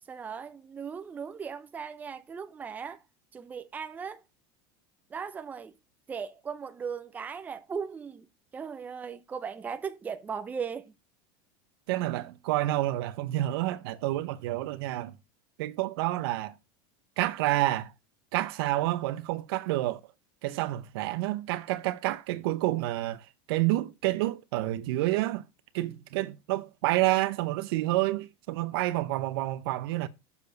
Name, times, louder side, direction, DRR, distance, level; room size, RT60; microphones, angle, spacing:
voice 1, 0.1-3.0 3.3-4.2 5.1-5.7 6.1-8.3 8.5-10.9, right 6 dB, 10° right, 0.5 m, -37 dB
voice 2, 11.9-15.1 15.6-16.5 17.2-17.9 18.3-20.0 20.4-23.2 23.5-25.4 25.7-30.1, right 16 dB, 70° right, 0.7 m, -29 dB
6.9 x 4.7 x 5.1 m
supercardioid pair, 160°, 13 cm